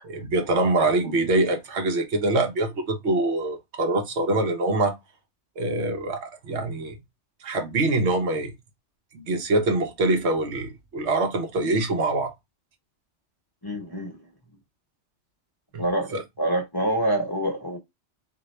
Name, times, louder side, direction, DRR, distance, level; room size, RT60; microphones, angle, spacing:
voice 1, 0.1-4.9 5.6-7.0 7.4-8.5 9.1-12.3 15.7-15.8 16.1-16.2, right 2 dB, 75° right, 1.1 m, -24 dB
voice 2, 13.6-14.2 15.8-17.8, right 1 dB, 20° left, 1.0 m, -26 dB
3.9 x 2.7 x 3.1 m
omnidirectional pair, 1.2 m